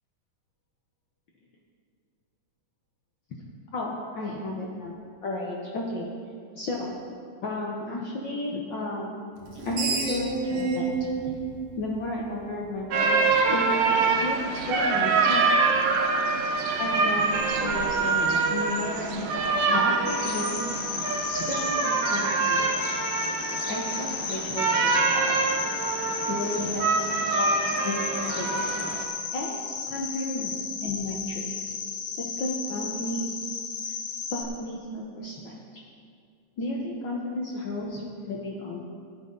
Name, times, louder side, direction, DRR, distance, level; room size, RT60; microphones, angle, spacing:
voice 1, 3.7-4.9 5.2-6.1 6.6-6.9 7.4-9.2 9.6-10.9 11.8-15.6 16.8-20.7 21.2-22.9 23.7-25.4 26.3-28.8 29.3-30.6 30.8-31.6 32.2-33.4 34.3-35.5 36.6-38.8, left 1 dB, 65° left, -2 dB, 1.1 m, -33 dB
Screech, 9.4-12.6, right 4 dB, 55° right, 2.2 m, -30 dB
sound 1, 12.9-29.0, right 4 dB, 85° right, 2.7 m, -25 dB
Cricket, 20.1-34.4, left 6 dB, 85° left, 2.7 m, -34 dB
17.0 x 10.0 x 4.0 m, 2.2 s
omnidirectional pair, 3.7 m